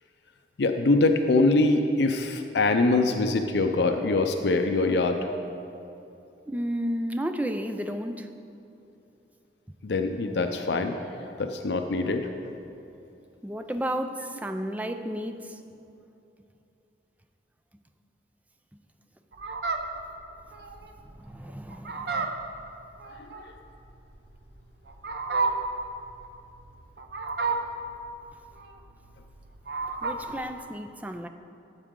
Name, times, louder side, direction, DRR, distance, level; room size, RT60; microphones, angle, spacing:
voice 1, 0.6-5.2 9.8-12.3, left 2 dB, 75° left, 6 dB, 0.5 m, -24 dB
voice 2, 6.5-8.3 13.4-15.6 21.2-22.4 30.0-31.3, equal, 10° right, 7 dB, 0.4 m, -32 dB
Fowl, 19.3-30.4, right 4 dB, 65° right, 0.7 m, -32 dB
13.0 x 8.1 x 3.7 m, 2.7 s
head